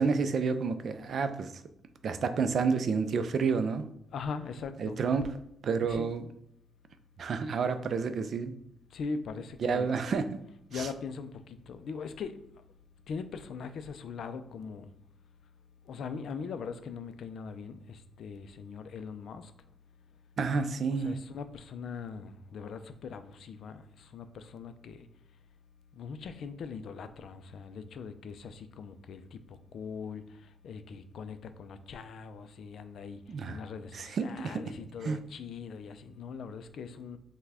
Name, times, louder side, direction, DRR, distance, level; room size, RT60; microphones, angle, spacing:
voice 1, 0.0-1.5 2.0-3.8 4.8-5.3 5.6-6.3 7.2-8.5 9.6-10.4 10.7-10.9 20.4-21.2 33.3-33.6 33.9-34.6 35.0-35.2, right 5 dB, 45° right, 10 dB, 0.3 m, -29 dB
voice 2, 4.1-5.0 5.8-6.1 8.9-9.9 10.7-11.3 11.7-12.4 13.1-14.9 15.9-19.5 21.0-23.8 24.1-25.0 26.0-29.2 29.7-30.2 30.6-33.2 33.5-37.2, left 5 dB, 55° left, 10 dB, 0.3 m, -41 dB
5.7 x 2.2 x 3.4 m, 0.74 s
wide cardioid pair, 170°, 0 cm